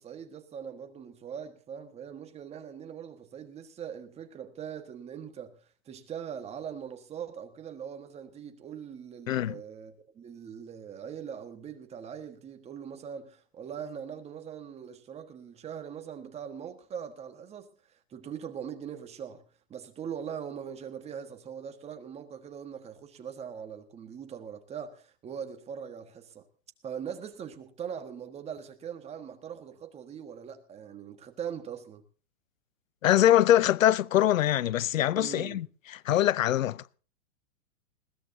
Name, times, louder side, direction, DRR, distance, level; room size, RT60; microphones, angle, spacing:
voice 1, 0.0-19.4 19.7-26.4 26.8-32.0 35.1-35.6, right 8 dB, 15° right, 1.5 m, -41 dB
voice 2, 9.3-9.6 33.0-35.7 36.0-37.0, left 12 dB, 90° left, 0.7 m, -23 dB
21.0 x 16.5 x 2.7 m
hypercardioid pair, 145°, 39 cm